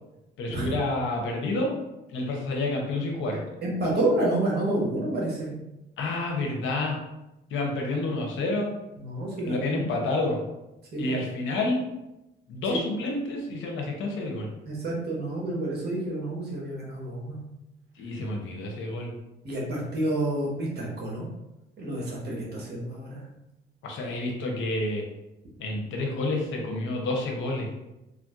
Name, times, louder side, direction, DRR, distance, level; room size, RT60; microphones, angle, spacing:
voice 1, 0.4-1.7 2.1-3.4 6.0-7.0 7.5-8.7 9.5-10.4 11.0-11.8 12.5-14.5 18.0-19.1 23.8-25.0 25.6-27.7, left 2 dB, 80° left, 0 dB, 0.7 m, -29 dB
voice 2, 3.6-5.5 9.0-9.9 10.9-11.0 14.7-17.4 19.4-21.3 21.8-23.2, right 1 dB, 55° right, -4 dB, 1.0 m, -29 dB
3.1 x 2.5 x 2.4 m, 0.97 s
cardioid pair, 90°, 20 cm